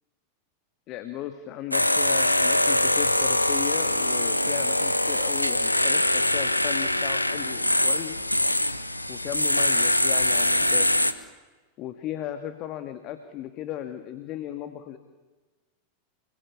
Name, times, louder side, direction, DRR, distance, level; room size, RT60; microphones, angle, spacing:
voice 1, 0.9-8.2 9.1-10.9 11.8-15.0, left 11 dB, 40° left, 9 dB, 1.9 m, -36 dB
sound 1, 1.7-11.1, left 1 dB, 85° left, 1.3 m, -23 dB
29.0 x 22.0 x 8.6 m, 1.3 s
figure-of-eight pair, 90°, 0 cm